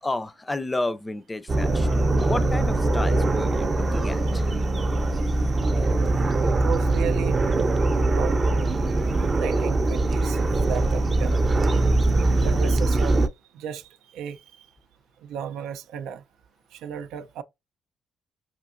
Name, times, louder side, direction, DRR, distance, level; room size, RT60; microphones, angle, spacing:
voice 1, 0.0-4.4 5.4-5.5, left 2 dB, 20° left, 0.4 m, -31 dB
sound 1, 1.5-13.3, right 2 dB, 35° right, 0.5 m, -22 dB
voice 2, 6.4-7.4 8.0-11.9 12.4-13.2 13.5-14.7 15.2-16.2 16.7-17.4, right 8 dB, 90° right, 0.4 m, -35 dB
5.6 x 2.7 x 2.4 m
cardioid pair, 90°, 0 cm